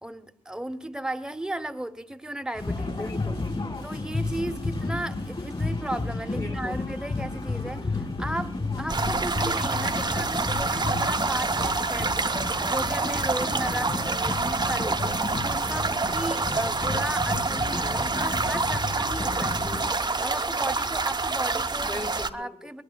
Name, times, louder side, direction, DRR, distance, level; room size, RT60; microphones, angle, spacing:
voice 1, 0.0-3.1 3.8-12.2 12.6-15.0 15.4-19.7 20.2-22.0 22.3-22.8, right 1 dB, 5° right, 1.0 m, -35 dB
sound 1, 2.5-19.9, left 3 dB, 40° left, 4.9 m, -32 dB
voice 2, 2.9-3.8 6.4-6.8 15.0-15.3 17.5-17.8 21.8-22.7, left 2 dB, 25° left, 1.8 m, -39 dB
sound 2, 8.9-22.3, right 3 dB, 30° right, 0.9 m, -27 dB
22.0 x 19.0 x 2.3 m
supercardioid pair, 50°, 14 cm